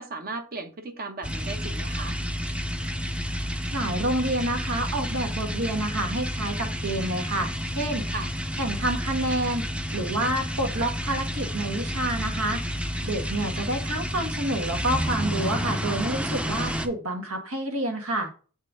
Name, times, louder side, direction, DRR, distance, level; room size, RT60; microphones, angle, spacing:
voice 1, 0.0-2.2 8.1-8.3 13.3-13.7, right 3 dB, 45° right, 1.0 m, -36 dB
sound 1, 1.2-16.9, equal, 5° right, 0.6 m, -30 dB
voice 2, 3.7-8.1 8.6-9.6 9.9-12.6 13.0-18.3, right 1 dB, 80° right, 1.7 m, -28 dB
7.7 x 4.5 x 3.7 m
head